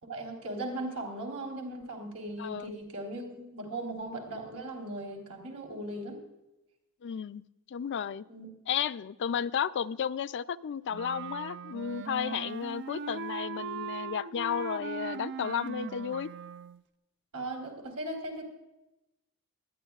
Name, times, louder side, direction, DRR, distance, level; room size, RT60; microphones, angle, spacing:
voice 1, 0.0-6.2 8.3-8.5 17.3-18.5, right 1 dB, 85° right, 1 dB, 3.9 m, -38 dB
voice 2, 2.4-2.7 7.0-7.4 7.7-8.2 8.7-16.3, left 8 dB, 55° left, 14 dB, 0.4 m, -33 dB
Wind instrument woodwind instrument, 10.9-16.8, right 5 dB, 55° right, 0.4 m, -39 dB
20.5 x 12.0 x 2.4 m, 0.95 s
head